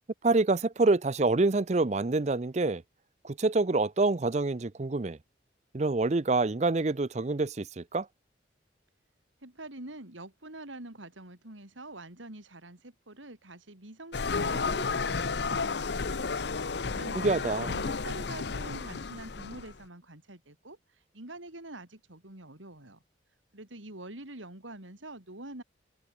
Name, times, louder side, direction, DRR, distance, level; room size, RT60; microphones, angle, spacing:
voice 1, 0.2-2.8 3.2-5.2 5.7-8.1 17.1-17.8, right 3 dB, 35° right, 0.5 m, -26 dB
voice 2, 9.4-16.4 16.6-23.0 23.5-25.6, right 2 dB, 90° right, 4.2 m, -46 dB
sound 1, 14.1-19.7, left 4 dB, 60° left, 0.7 m, -32 dB
head